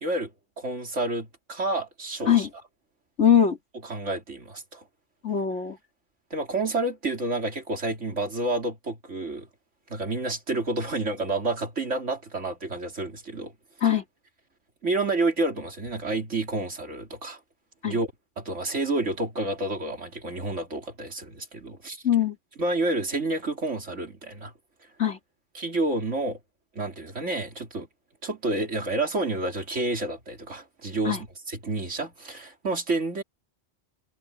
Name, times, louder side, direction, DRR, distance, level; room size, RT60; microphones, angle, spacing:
voice 1, 0.6-2.5 3.9-4.8 6.3-9.5 9.9-13.5 14.8-17.4 17.8-18.1 18.4-22.0 22.6-24.5 25.6-26.4 26.8-27.9 28.2-31.2 31.5-33.2, right 2 dB, 70° right, 3.5 m, -29 dB
voice 2, 3.2-3.6 5.2-5.8 13.8-14.0 17.8-18.0 22.0-22.4 25.0-25.2 31.1-31.2, left 9 dB, 65° left, 4.0 m, -21 dB
omnidirectional pair, 1.3 m